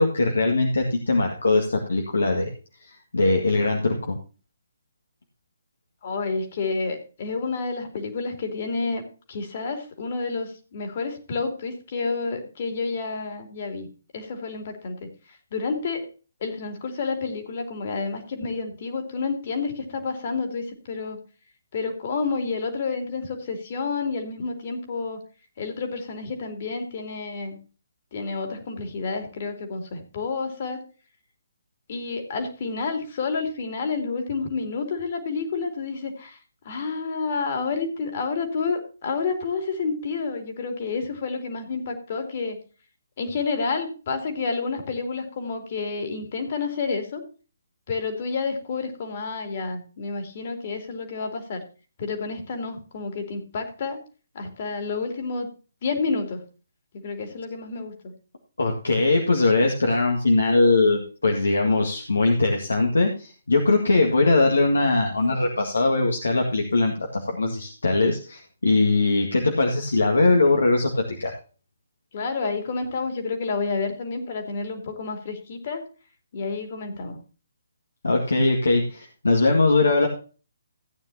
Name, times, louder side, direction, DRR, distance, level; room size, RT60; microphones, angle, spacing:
voice 1, 0.0-2.5 2.8-4.2 58.6-71.3 78.0-80.1, left 2 dB, 75° left, 1 dB, 1.9 m, -21 dB
voice 2, 6.0-9.0 9.3-13.9 14.1-15.1 15.5-16.1 16.4-21.2 21.7-25.2 25.6-27.6 28.1-30.8 31.9-36.4 36.6-42.6 43.2-47.2 47.9-51.6 52.0-54.0 54.3-55.5 55.8-56.4 56.9-57.9 72.1-75.8 76.3-77.2, left 4 dB, 45° left, 5 dB, 2.9 m, -29 dB
15.5 x 9.2 x 2.8 m, 0.36 s
figure-of-eight pair, 140°, 0 cm